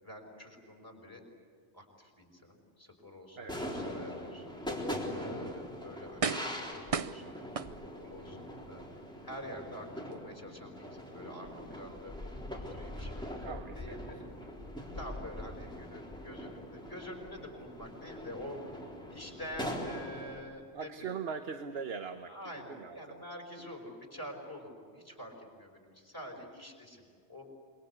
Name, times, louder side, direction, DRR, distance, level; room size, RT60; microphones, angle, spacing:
voice 1, 0.0-1.2 1.7-7.4 7.8-8.8 9.2-12.1 12.7-14.2 14.9-18.8 19.1-21.2 22.3-27.4, left 1 dB, 20° left, 1 dB, 5.4 m, -47 dB
sound 1, 3.5-20.4, equal, 5° left, 3.8 m, -42 dB
sound 2, 5.3-5.4 6.2-6.6 6.9-8.2 8.7-8.8, right 5 dB, 35° right, 0.7 m, -34 dB
voice 2, 13.4-14.1 20.7-22.3 22.7-23.2, right 6 dB, 65° right, 7 dB, 1.3 m, -40 dB
27.0 x 23.5 x 8.3 m, 2.1 s
omnidirectional pair, 1.1 m